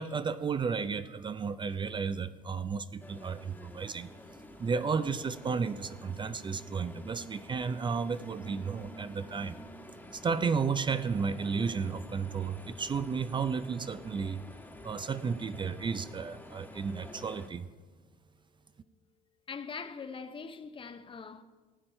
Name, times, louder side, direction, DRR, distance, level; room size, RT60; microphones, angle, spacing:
voice 1, 0.0-4.1 4.6-9.6 10.1-14.4 14.8-17.7, right 5 dB, 30° right, 0.4 m, -33 dB
sound 1, 3.0-17.5, left 1 dB, 10° left, 1.3 m, -49 dB
voice 2, 19.5-21.4, left 5 dB, 30° left, 0.7 m, -42 dB
16.0 x 8.6 x 4.4 m
cardioid pair, 110°, 17 cm